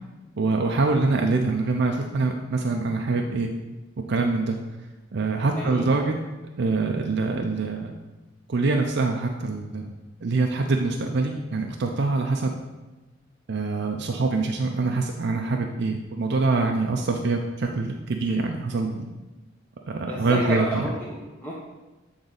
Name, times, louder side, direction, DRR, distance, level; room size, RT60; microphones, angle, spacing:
voice 1, 0.4-3.5 4.1-4.6 5.1-6.1 6.6-7.9 8.5-9.9 10.2-12.5 13.5-19.0 19.9-20.8, right 3 dB, 55° right, 2 dB, 0.5 m, -24 dB
voice 2, 5.5-5.9 20.0-21.5, equal, 10° left, -6 dB, 0.7 m, -30 dB
8.0 x 4.0 x 3.9 m, 1.1 s
head